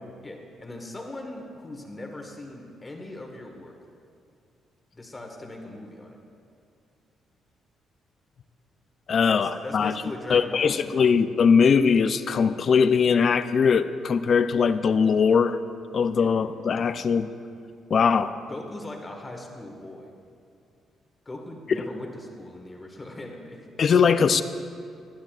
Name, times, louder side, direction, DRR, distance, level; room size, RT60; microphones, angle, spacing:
voice 1, 0.2-3.8 4.9-6.2 9.2-10.9 16.2-16.3 18.5-20.1 21.2-23.7, left 1 dB, 25° left, 2 dB, 1.6 m, -39 dB
voice 2, 9.1-9.9 10.3-15.6 15.9-17.3 17.9-18.4 23.8-24.4, left 6 dB, 50° left, 12 dB, 0.4 m, -21 dB
18.0 x 11.0 x 2.4 m, 2.4 s
cardioid pair, 90°, 0 cm